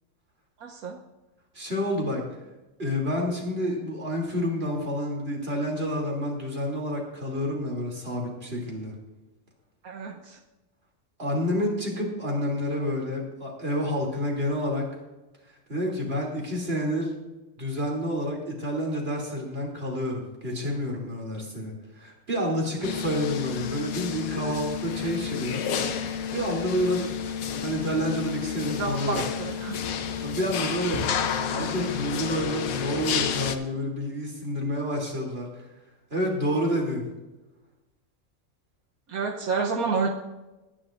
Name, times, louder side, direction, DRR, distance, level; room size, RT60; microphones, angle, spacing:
voice 1, 0.6-1.0 9.8-10.4 28.8-29.8 39.1-40.1, right 4 dB, 80° right, 0 dB, 1.4 m, -29 dB
voice 2, 1.5-2.2 2.8-8.9 11.2-14.9 15.7-17.1 17.6-25.6 26.0-27.1 27.6-29.2 30.2-31.0 31.5-35.5 36.1-37.0, equal, 45° right, -1 dB, 3.2 m, -29 dB
sound 1, 22.8-33.6, left 7 dB, 80° left, 1.3 m, -30 dB
21.0 x 10.5 x 2.5 m, 1.1 s
omnidirectional pair, 1.5 m